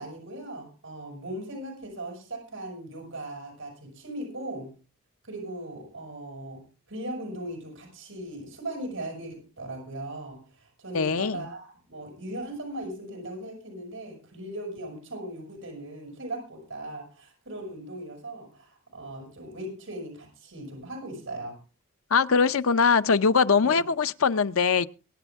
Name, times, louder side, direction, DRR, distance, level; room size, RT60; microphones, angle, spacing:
voice 1, 0.0-4.7 5.2-6.6 6.9-21.6 23.6-23.8, right 1 dB, 65° right, 6.5 m, -38 dB
voice 2, 10.9-11.4 22.1-24.9, left 5 dB, 75° left, 0.7 m, -22 dB
23.0 x 9.3 x 3.6 m
head